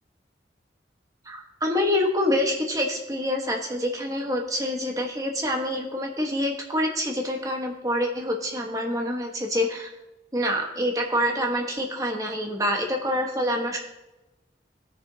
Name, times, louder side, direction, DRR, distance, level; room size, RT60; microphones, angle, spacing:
voice 1, 1.3-9.9 10.3-13.8, left 1 dB, 20° right, 1 dB, 1.2 m, -26 dB
17.0 x 6.8 x 2.8 m, 1.0 s
head